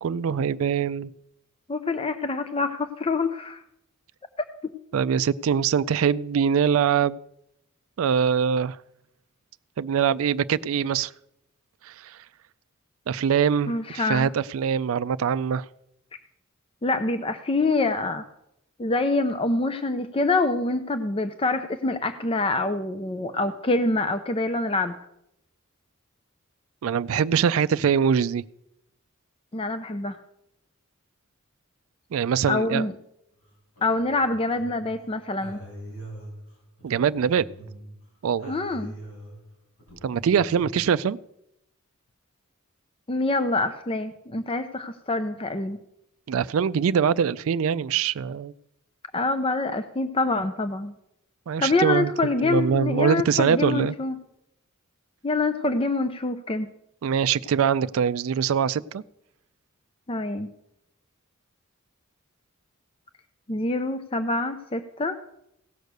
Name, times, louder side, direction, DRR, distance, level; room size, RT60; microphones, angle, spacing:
voice 1, 0.0-1.1 4.9-7.2 8.0-8.8 9.8-11.1 11.8-12.2 13.1-15.6 26.8-28.4 32.1-32.9 36.8-37.5 38.2-38.5 40.0-41.2 46.3-48.5 51.5-52.1 52.4-53.9 57.0-59.0, right 7 dB, 70° right, 14 dB, 0.4 m, -23 dB
voice 2, 1.7-3.6 13.7-14.3 16.8-18.2 18.8-24.9 29.5-30.2 32.5-32.9 33.8-35.6 38.5-39.0 43.1-45.8 49.1-50.9 51.6-54.2 55.2-56.7 60.1-60.5 63.5-65.2, left 2 dB, 25° left, 10 dB, 0.5 m, -26 dB
sound 1, 33.4-34.9 35.4-38.0 38.4-40.7, right 1 dB, 75° left, 5.0 m, -43 dB
16.5 x 6.5 x 6.6 m, 0.80 s
head